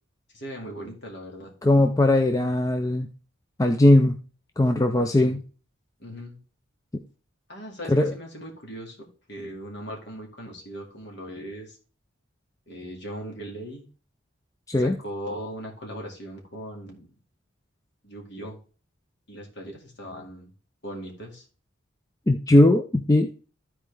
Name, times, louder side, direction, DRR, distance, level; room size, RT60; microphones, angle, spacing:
voice 1, 0.3-1.5 4.9-5.4 6.0-6.4 7.5-11.8 12.7-13.8 14.8-17.2 18.0-18.6 19.3-20.5 20.8-21.5, equal, 55° left, 0 dB, 2.2 m, -39 dB
voice 2, 1.6-3.1 3.6-4.2 4.6-5.4 7.9-8.1 14.7-15.0 22.3-23.3, left 1 dB, 15° left, 5 dB, 0.4 m, -19 dB
13.0 x 4.5 x 3.3 m, 0.37 s
head